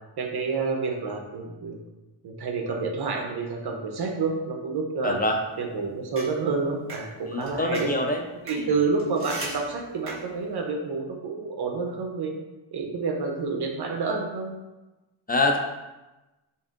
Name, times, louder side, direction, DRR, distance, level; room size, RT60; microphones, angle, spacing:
voice 1, 0.2-1.8 2.2-5.2 5.6-7.9 8.5-12.3 12.7-14.5, right 4 dB, 50° right, 2 dB, 0.8 m, -29 dB
voice 2, 5.0-5.4 7.2-8.2 8.6-8.7 15.3-15.6, left 2 dB, 20° left, 3 dB, 0.3 m, -25 dB
sound 1, 5.5-10.5, right 2 dB, 25° right, 1.3 m, -41 dB
6.9 x 2.6 x 2.5 m, 1.1 s
wide cardioid pair, 130°, 50 cm